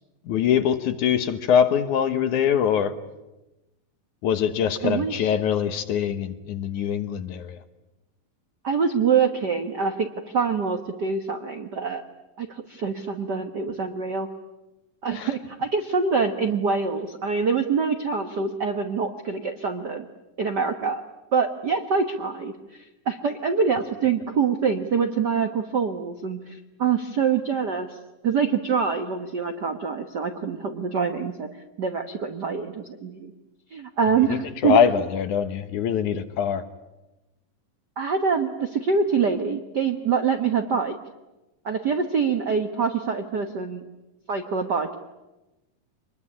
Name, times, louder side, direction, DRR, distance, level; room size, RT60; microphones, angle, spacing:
voice 1, 0.3-2.9 4.2-7.6 15.1-15.3 34.3-36.6, left 8 dB, 65° left, 10 dB, 2.5 m, -23 dB
voice 2, 4.8-5.3 8.6-10.1 10.3-12.0 12.4-14.3 15.0-20.0 20.4-21.0 21.3-28.0 28.2-31.5 31.8-33.3 33.7-34.8 38.0-40.9 41.6-43.8 44.3-45.0, right 5 dB, 85° right, 6 dB, 0.9 m, -25 dB
25.5 x 21.5 x 9.9 m, 1.0 s
omnidirectional pair, 4.0 m